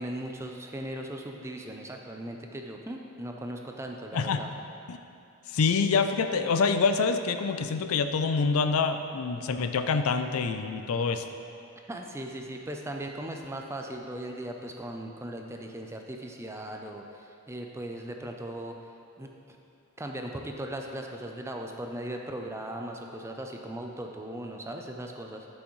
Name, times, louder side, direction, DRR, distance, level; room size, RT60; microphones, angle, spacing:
voice 1, 0.0-4.5 11.9-18.8 19.2-19.6 20.0-25.5, right 1 dB, 10° right, 2 dB, 0.5 m, -38 dB
voice 2, 5.5-11.3, left 5 dB, 75° left, 8 dB, 0.4 m, -26 dB
11.5 x 6.3 x 3.1 m, 2.6 s
head